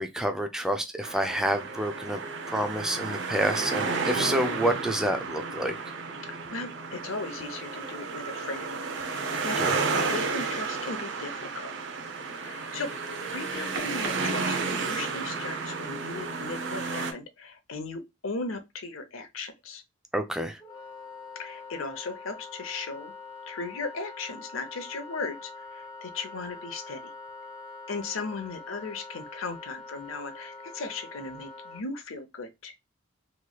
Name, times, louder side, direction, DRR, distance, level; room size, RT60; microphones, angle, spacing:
voice 1, 0.0-2.2 2.5-5.7 9.6-9.7 20.1-20.6, right 1 dB, 5° right, 0.4 m, -28 dB
sound 1, 1.0-17.1, right 4 dB, 65° right, 0.6 m, -32 dB
voice 2, 6.3-8.8 9.1-9.6 9.9-11.7 12.4-12.9 13.3-19.8 21.4-23.1 23.5-27.1 27.9-32.7, left 3 dB, 80° left, 0.7 m, -37 dB
Wind instrument woodwind instrument, 20.6-31.8, left 3 dB, 25° left, 1.1 m, -44 dB
3.1 x 3.0 x 2.3 m
head